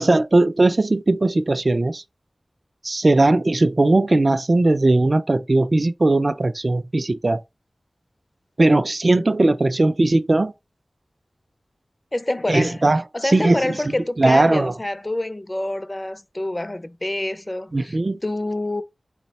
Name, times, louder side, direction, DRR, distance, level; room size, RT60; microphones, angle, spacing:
voice 1, 0.0-2.0 2.8-7.4 8.6-10.5 12.5-13.8 14.2-14.7 17.7-18.2, right 2 dB, 50° right, 0.3 m, -18 dB
voice 2, 12.1-12.8 13.1-18.8, left 1 dB, 30° left, 0.4 m, -27 dB
4.0 x 2.1 x 4.0 m
wide cardioid pair, 45°, 0 cm